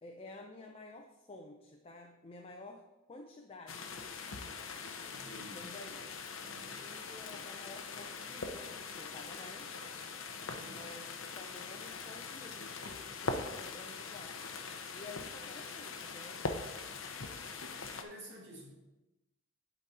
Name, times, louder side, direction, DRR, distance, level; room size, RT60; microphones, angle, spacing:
voice 1, 0.0-4.6 5.5-6.1 6.8-9.9 10.7-14.4 14.9-16.4, left 2 dB, 30° left, 2 dB, 0.5 m, -52 dB
sound 1, 3.7-18.0, left 4 dB, 70° left, 0.7 m, -42 dB
voice 2, 5.1-5.6 6.4-6.8 10.5-10.8 17.9-18.7, equal, 55° right, -3 dB, 2.0 m, -51 dB
11.0 x 4.1 x 4.2 m, 1.0 s
head